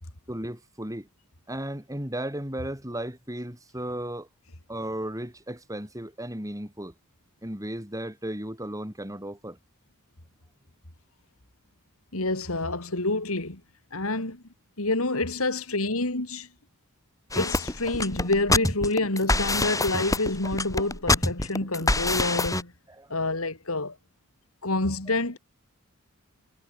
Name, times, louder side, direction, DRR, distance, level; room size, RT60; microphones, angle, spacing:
voice 1, 0.3-1.1 1.5-4.3 4.7-6.9 7.4-9.6 23.0-23.1, right 1 dB, 15° right, 7.6 m, -35 dB
voice 2, 12.1-13.6 13.9-14.4 14.8-16.5 17.3-22.7 23.1-24.0 24.6-25.4, left 2 dB, 70° left, 3.2 m, -28 dB
sound 1, 17.3-22.6, left 2 dB, 15° left, 6.8 m, -25 dB
head